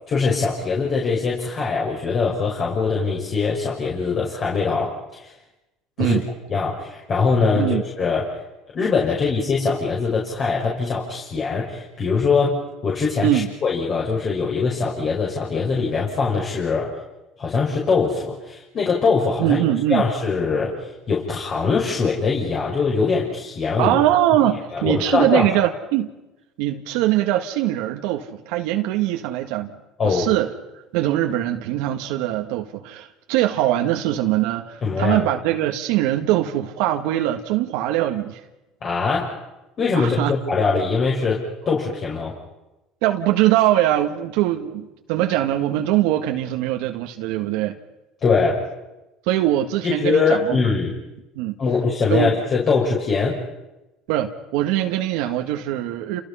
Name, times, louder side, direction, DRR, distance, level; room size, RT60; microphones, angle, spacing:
voice 1, 0.1-5.3 6.0-6.2 6.5-8.3 8.7-16.9 17.4-19.6 19.9-20.8 21.1-23.9 24.7-25.5 30.0-30.3 34.8-35.2 38.8-39.3 39.8-42.3 48.2-48.6 49.8-50.9 51.6-53.4, left 4 dB, 40° left, -3 dB, 6.1 m, -22 dB
voice 2, 19.4-20.0 23.8-26.1 26.6-29.8 30.0-30.5 30.9-38.4 39.9-40.3 43.0-47.8 49.3-50.6 51.4-51.6 52.1-52.4 54.1-56.2, right 13 dB, 80° right, 4 dB, 1.7 m, -22 dB
29.5 x 28.5 x 5.7 m, 1.0 s
supercardioid pair, 110°, 0 cm